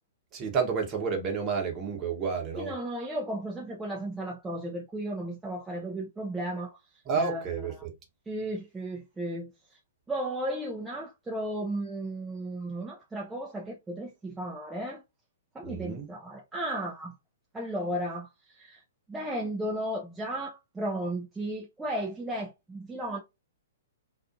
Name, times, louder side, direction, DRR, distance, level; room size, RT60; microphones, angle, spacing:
voice 1, 0.3-2.7 7.1-7.9 15.6-16.1, right 5 dB, 25° right, 0.9 m, -30 dB
voice 2, 2.6-6.8 7.1-7.4 8.3-9.8 10.1-15.0 15.5-17.1 17.5-18.8 19.1-23.2, right 1 dB, 10° right, 0.4 m, -34 dB
2.5 x 2.3 x 2.5 m
figure-of-eight pair, 120°, 0 cm